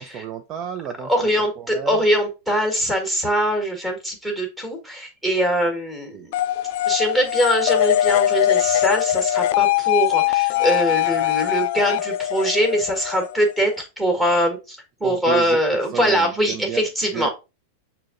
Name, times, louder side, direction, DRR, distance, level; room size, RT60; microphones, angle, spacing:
voice 1, 0.0-1.1 1.6-2.0 6.1-6.3 15.0-15.6 15.9-16.8 17.1-17.3, right 9 dB, 40° right, 6 dB, 0.4 m, -31 dB
voice 2, 1.0-6.3 6.8-17.3, equal, 10° right, 1 dB, 1.4 m, -22 dB
sound 1, 6.3-13.8, left 13 dB, 60° left, 0.3 m, -21 dB
6.1 x 2.7 x 2.5 m, 0.27 s
hypercardioid pair, 125°, 0 cm